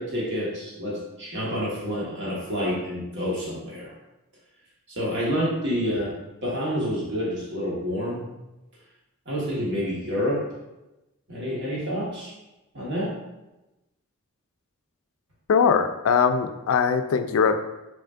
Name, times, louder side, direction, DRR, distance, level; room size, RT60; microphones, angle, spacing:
voice 1, 0.0-3.9 4.9-6.2 6.4-8.3 9.3-10.4 11.3-12.3 12.7-13.2, equal, 55° right, -5 dB, 1.2 m, -28 dB
voice 2, 15.5-17.6, left 6 dB, 70° left, 8 dB, 0.3 m, -21 dB
5.0 x 4.2 x 2.4 m, 0.99 s
head